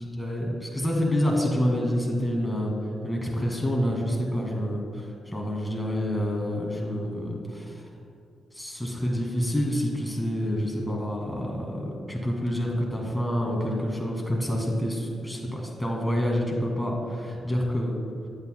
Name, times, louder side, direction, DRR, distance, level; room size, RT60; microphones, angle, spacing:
voice 1, 0.0-2.7 3.0-7.8 8.5-18.0, equal, 5° left, -1 dB, 1.9 m, -28 dB
9.6 x 8.0 x 2.2 m, 2.4 s
supercardioid pair, 60°, 0 cm